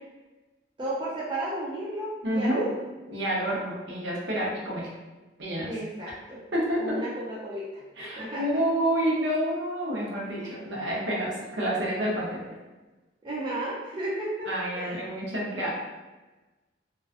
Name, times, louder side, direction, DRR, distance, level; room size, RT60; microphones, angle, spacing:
voice 1, 0.8-2.9 5.7-6.4 6.8-7.8 8.2-8.6 10.4-10.6 13.2-14.5 14.8-15.0, right 1 dB, 25° right, -6 dB, 0.3 m, -33 dB
voice 2, 2.2-2.7 3.1-4.9 5.4-5.7 6.5-7.0 8.0-12.4 14.5-15.7, right 1 dB, 65° right, -4 dB, 0.6 m, -28 dB
2.3 x 2.2 x 2.4 m, 1.2 s
head